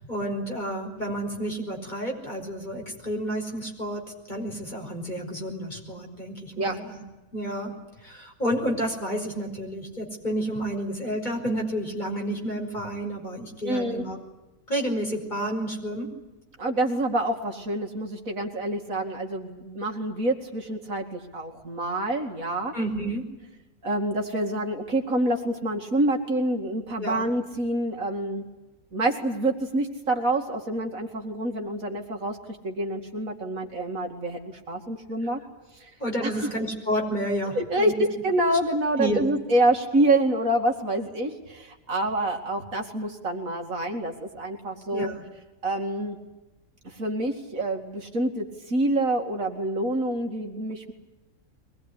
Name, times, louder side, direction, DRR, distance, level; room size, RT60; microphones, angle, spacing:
voice 1, 0.0-7.0 7.3-7.7 8.0-14.2 14.7-16.1 22.7-23.3 27.0-27.3 36.0-37.9 39.0-39.3 44.9-45.3, equal, 30° left, 1 dB, 5.4 m, -30 dB
voice 2, 13.6-14.0 16.6-22.7 23.8-28.5 28.9-32.4 32.6-35.4 35.8-35.9 36.2-36.5 37.5-45.1 45.6-46.2 46.8-50.9, right 1 dB, 65° right, 3 dB, 2.7 m, -27 dB
23.0 x 19.5 x 9.9 m, 1.0 s
omnidirectional pair, 1.6 m